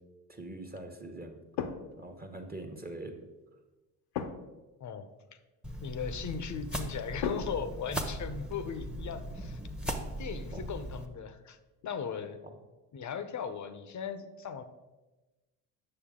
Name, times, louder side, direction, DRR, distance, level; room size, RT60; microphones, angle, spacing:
voice 1, 0.3-1.4 2.0-3.2 10.5-10.6 12.4-12.6, right 2 dB, 20° right, 3 dB, 1.3 m, -43 dB
sound 1, 1.6-2.1 4.1-4.7 7.2-8.4 11.8-12.2, left 7 dB, 65° left, 0.9 m, -37 dB
sound 2, 5.6-11.1, equal, ahead, 1.1 m, -38 dB
voice 2, 5.8-9.6 10.2-11.6 11.8-12.4 12.9-14.6, left 6 dB, 40° left, 10 dB, 0.8 m, -38 dB
8.8 x 6.5 x 3.7 m, 1.1 s
hypercardioid pair, 65°, 47 cm